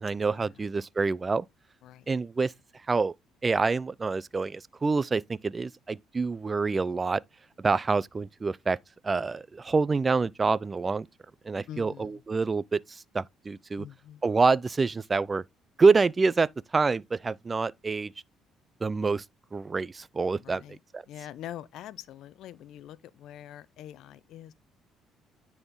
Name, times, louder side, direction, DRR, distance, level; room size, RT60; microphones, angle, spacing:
voice 1, 0.0-1.5 2.1-2.5 2.9-3.1 3.4-7.2 7.6-8.8 9.0-11.1 11.4-13.9 14.2-15.4 15.8-18.1 18.8-19.2 19.5-20.6 20.9-21.0, right 4 dB, 30° right, 0.4 m, -26 dB
voice 2, 11.7-12.2 13.8-14.2 20.4-20.8 21.1-24.5, left 11 dB, 70° left, 0.6 m, -44 dB
9.5 x 4.2 x 3.7 m
supercardioid pair, 70°, 0 cm